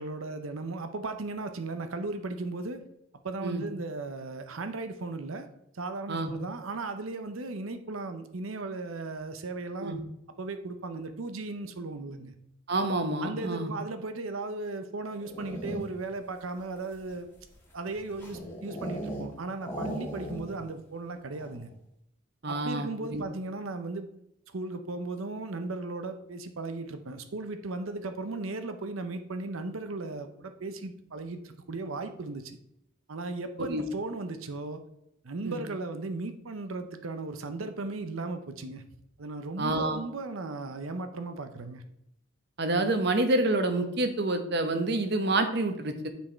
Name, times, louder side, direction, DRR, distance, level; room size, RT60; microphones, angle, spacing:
voice 1, 0.0-2.8 3.2-5.5 5.7-9.9 10.4-12.3 13.2-17.3 17.7-21.7 22.5-24.1 24.5-32.6 33.1-34.8 35.2-38.8 39.2-41.8, right 3 dB, 90° right, 8 dB, 0.7 m, -36 dB
voice 2, 12.7-13.7 22.4-23.2 33.6-33.8 35.4-35.6 39.6-40.0 42.6-46.1, right 2 dB, 55° right, 7 dB, 0.9 m, -28 dB
sound 1, 15.1-16.1 16.8-19.3 19.6-20.7 21.0-21.1 21.3-21.7, equal, 10° left, 1.9 m, -38 dB
9.2 x 4.5 x 4.5 m, 0.80 s
head